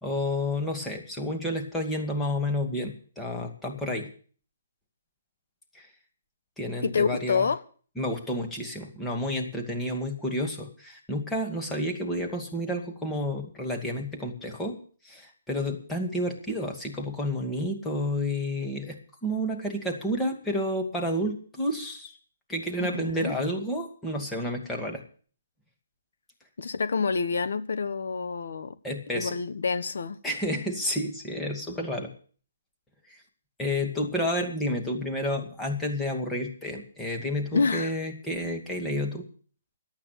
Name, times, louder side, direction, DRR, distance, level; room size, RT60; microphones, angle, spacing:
voice 1, 0.0-4.1 5.7-5.9 6.6-7.5 8.0-14.8 15.0-22.1 22.5-25.0 28.8-29.4 30.2-32.1 33.1-33.2 33.6-39.2, left 1 dB, 5° left, 1 dB, 2.3 m, -30 dB
voice 2, 6.8-7.6 22.8-23.3 26.6-28.7 29.1-30.2 37.5-37.9, left 5 dB, 75° left, 11 dB, 1.3 m, -27 dB
11.5 x 8.8 x 9.2 m, 0.43 s
hypercardioid pair, 150°, 0 cm